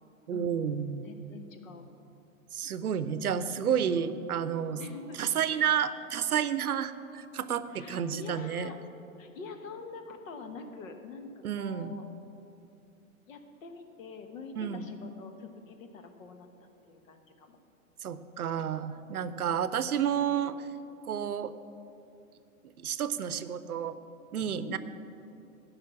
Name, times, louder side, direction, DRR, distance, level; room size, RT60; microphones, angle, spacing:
voice 1, 0.3-1.1 2.5-4.8 5.2-8.7 11.4-12.0 14.6-14.9 18.0-20.7 21.0-21.5 22.8-24.0 24.3-24.8, right 8 dB, 85° right, 13 dB, 0.7 m, -30 dB
voice 2, 1.0-1.9 4.8-5.2 5.5-5.7 7.7-8.8 9.2-12.0 13.3-17.6 24.5-24.8, left 4 dB, 65° left, 7 dB, 1.4 m, -45 dB
13.5 x 5.6 x 7.0 m, 2.8 s
hypercardioid pair, 110°, 43 cm